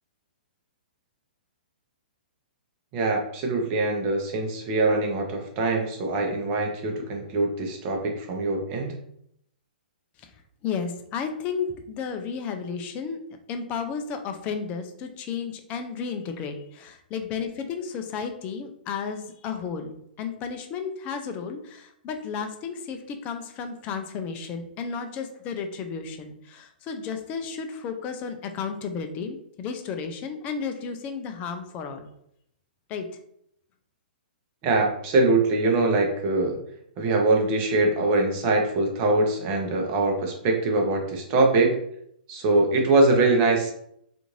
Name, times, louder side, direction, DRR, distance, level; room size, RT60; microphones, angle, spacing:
voice 1, 2.9-8.9 34.6-36.6 37.0-41.8 42.3-43.7, right 2 dB, 35° right, 1 dB, 0.7 m, -23 dB
voice 2, 10.6-13.2 13.5-32.1 32.9-33.1, left 6 dB, 25° left, 6 dB, 0.4 m, -33 dB
2.5 x 2.5 x 3.1 m, 0.73 s
hypercardioid pair, 135°, 5 cm